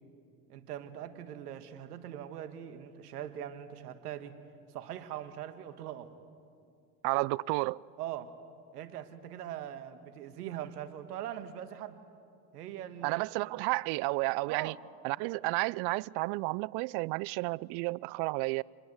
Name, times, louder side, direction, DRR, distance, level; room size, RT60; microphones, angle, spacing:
voice 1, 0.5-4.3 4.7-6.1 7.1-7.3 8.0-8.3 8.7-12.0 12.5-13.5 14.5-14.8, right 11 dB, 90° right, 1.6 m, -41 dB
voice 2, 7.0-7.8 13.0-14.7 15.0-18.6, right 25 dB, 60° right, 0.5 m, -31 dB
26.5 x 21.0 x 8.0 m
hypercardioid pair, 80°, 45 cm